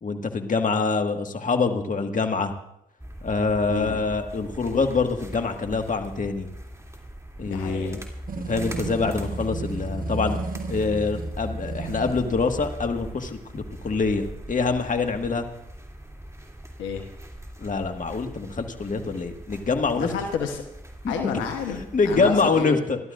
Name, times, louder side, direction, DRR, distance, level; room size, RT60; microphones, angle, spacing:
voice 1, 0.0-2.5 3.2-6.5 7.4-8.0 8.4-10.4 10.7-15.5 17.6-20.1 21.0-21.4 21.9-23.0, left 4 dB, 45° left, 5 dB, 1.8 m, -25 dB
sound 1, 3.0-22.6, equal, 15° right, 2.9 m, -38 dB
voice 2, 7.5-8.0 16.8-17.0 19.9-20.6 21.1-22.8, left 6 dB, 85° left, 4 dB, 1.1 m, -30 dB
sound 2, 8.3-12.3, right 7 dB, 45° right, 1.0 m, -36 dB
25.5 x 12.5 x 2.6 m, 0.81 s
hypercardioid pair, 45°, 19 cm